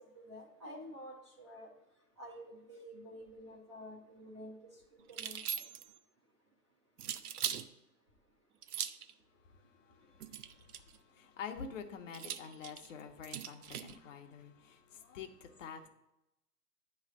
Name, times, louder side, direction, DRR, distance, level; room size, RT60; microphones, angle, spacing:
voice 1, 0.1-1.7 2.2-4.8 5.1-5.6, equal, 20° right, 0.4 m, -50 dB
sound 1, 5.1-6.0 7.0-7.7 8.6-9.1 10.2-11.0 12.1-14.0, right 9 dB, 75° right, 0.6 m, -40 dB
voice 2, 9.9-15.9, left 6 dB, 55° left, 0.9 m, -48 dB
8.9 x 3.2 x 6.2 m
hypercardioid pair, 135°, 46 cm